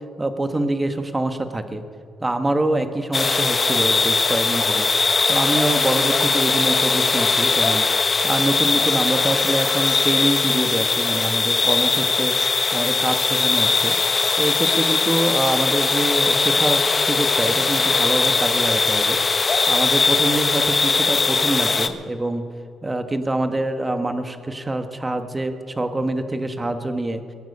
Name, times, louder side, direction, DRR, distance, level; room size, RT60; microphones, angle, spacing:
voice 1, 0.2-1.8 2.2-4.9 5.3-7.9 8.2-12.3 12.7-14.0 14.4-19.2 19.7-22.4 22.8-27.2, right 1 dB, 20° right, 8 dB, 1.3 m, -25 dB
sound 1, 3.1-21.9, left 4 dB, 30° left, 0.9 m, -20 dB
22.5 x 9.2 x 5.5 m, 2.5 s
cardioid pair, 90°, 0 cm